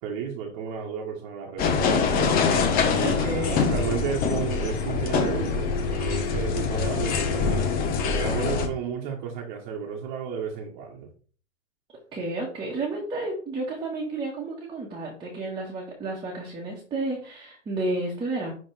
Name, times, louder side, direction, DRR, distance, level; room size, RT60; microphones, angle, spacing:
voice 1, 0.0-2.1 2.8-7.7 8.0-11.1, right 7 dB, 40° right, -1 dB, 1.5 m, -33 dB
sound 1, 1.6-8.7, left 5 dB, 25° left, 1.0 m, -24 dB
voice 2, 3.0-3.6 12.1-18.5, right 2 dB, 15° right, -3 dB, 1.6 m, -31 dB
10.5 x 3.6 x 3.4 m, 0.41 s
hypercardioid pair, 135°, 37 cm